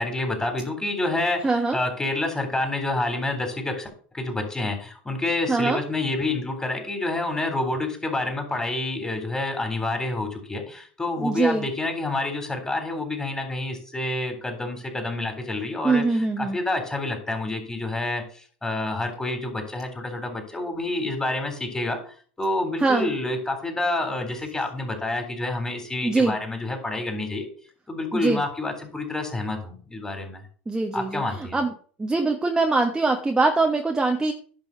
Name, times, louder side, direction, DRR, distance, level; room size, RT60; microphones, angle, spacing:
voice 1, 0.0-27.5 27.9-30.4 30.9-31.6, left 2 dB, 10° left, 5 dB, 3.7 m, -28 dB
voice 2, 1.4-1.8 5.5-5.8 11.2-11.7 15.8-16.6 22.8-23.1 26.0-26.4 28.1-28.4 30.7-31.7 32.0-34.3, right 3 dB, 15° right, 3 dB, 1.2 m, -23 dB
10.5 x 5.5 x 6.0 m, 0.43 s
hypercardioid pair, 90°, 6 cm